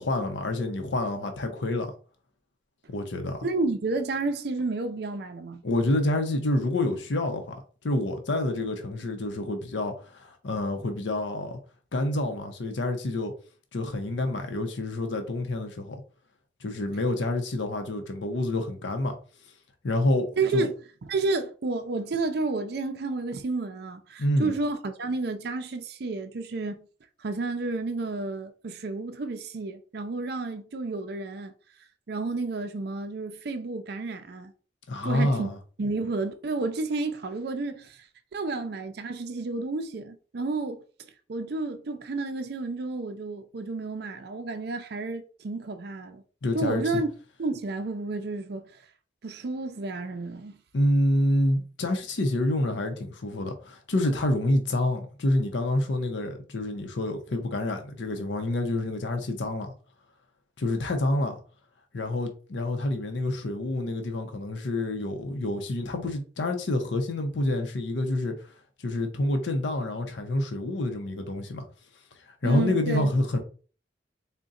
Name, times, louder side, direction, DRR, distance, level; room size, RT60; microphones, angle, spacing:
voice 1, 0.0-1.9 2.9-3.5 5.6-7.6 7.8-11.6 11.9-13.3 13.7-16.0 16.6-19.1 19.8-20.3 20.5-20.7 24.2-24.5 34.9-35.6 46.4-47.0 50.7-59.7 60.6-61.4 61.9-68.3 68.8-71.7 72.4-73.4, left 1 dB, 85° left, 0.6 m, -27 dB
voice 2, 3.4-5.6 20.4-20.7 21.0-26.8 27.2-31.5 32.1-34.5 35.0-35.5 35.8-38.1 38.3-40.8 41.3-46.2 46.5-47.1 47.4-48.8 49.2-50.6 72.4-73.1, right 3 dB, 60° right, 0.5 m, -31 dB
3.9 x 2.2 x 3.6 m
head